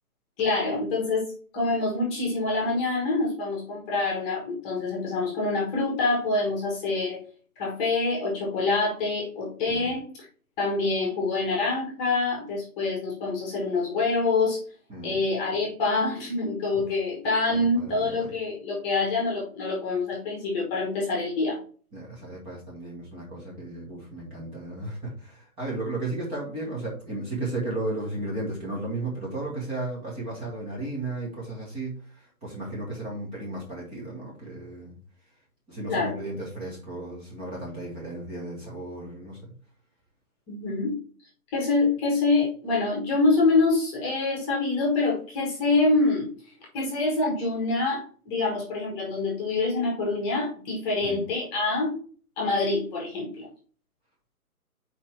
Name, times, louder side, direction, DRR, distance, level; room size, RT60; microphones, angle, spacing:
voice 1, 0.4-7.2 7.6-10.3 10.6-14.6 15.0-21.6 35.9-36.2 40.5-41.0 41.5-46.3 46.7-51.9 52.4-53.5, left 3 dB, 15° left, -2 dB, 1.4 m, -26 dB
voice 2, 17.5-18.3 21.9-35.0 35.7-39.5 51.0-51.3, right 2 dB, 10° right, -5 dB, 1.3 m, -34 dB
4.6 x 4.3 x 5.6 m, 0.43 s
figure-of-eight pair, 140°, 45 cm